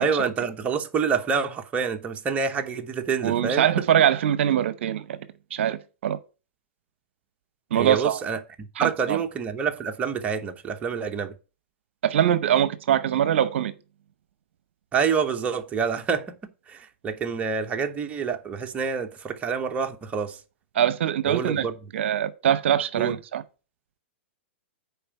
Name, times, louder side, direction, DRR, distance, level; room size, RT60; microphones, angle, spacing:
voice 1, 0.0-3.8 7.7-11.3 14.9-16.3 16.7-20.4 21.3-21.7 23.0-23.1, right 6 dB, 20° right, 1.0 m, -27 dB
voice 2, 3.2-5.2 5.5-5.8 6.0-6.2 7.7-8.2 8.8-9.2 12.0-13.7 20.7-21.7 21.9-23.4, right 10 dB, 70° right, 0.8 m, -23 dB
6.8 x 4.7 x 6.9 m
hypercardioid pair, 130°, 7 cm